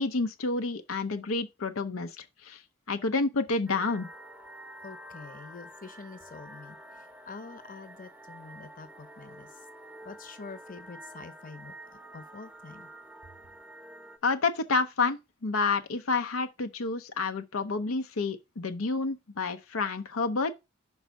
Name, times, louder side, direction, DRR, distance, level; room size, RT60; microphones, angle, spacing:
voice 1, 0.0-2.6 2.9-4.1 14.2-20.6, left 3 dB, 85° left, 0.7 m, -29 dB
sound 1, 3.7-14.2, right 1 dB, 5° right, 0.9 m, -48 dB
voice 2, 4.8-6.8 7.3-9.5 10.0-11.7 12.1-12.9, left 4 dB, 45° left, 0.9 m, -46 dB
5.4 x 4.7 x 5.2 m
head